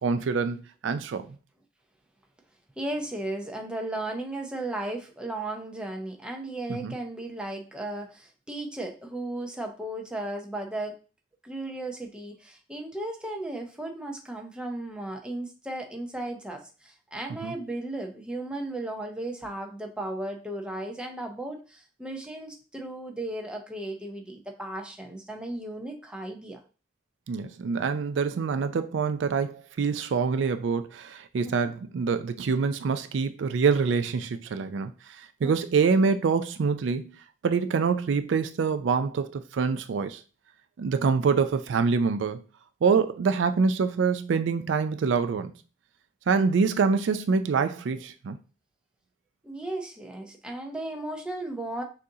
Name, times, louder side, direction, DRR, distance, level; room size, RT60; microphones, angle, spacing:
voice 1, 0.0-1.3 6.7-6.9 17.4-17.5 27.3-34.9 35.4-37.1 37.4-40.2 40.8-42.4 42.8-45.5 46.3-48.4, right 5 dB, 80° right, 0.4 m, -25 dB
voice 2, 2.8-10.9 11.4-26.6 31.4-31.7 35.4-35.5 49.4-51.8, right 1 dB, 5° right, 0.6 m, -35 dB
6.2 x 2.6 x 2.7 m
head